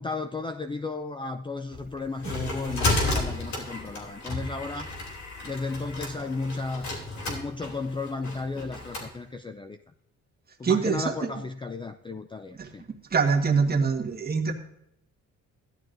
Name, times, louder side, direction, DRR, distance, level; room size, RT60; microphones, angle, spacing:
voice 1, 0.0-4.9 5.4-6.9 7.3-9.8 10.6-12.8, left 3 dB, 15° left, 8 dB, 0.4 m, -34 dB
sound 1, 1.7-9.1, left 2 dB, 70° left, 3.0 m, -32 dB
voice 2, 10.6-11.3 12.6-12.7 13.1-14.5, right 5 dB, 30° right, 2 dB, 1.5 m, -24 dB
14.0 x 11.0 x 2.6 m, 0.78 s
cardioid pair, 90°, 30 cm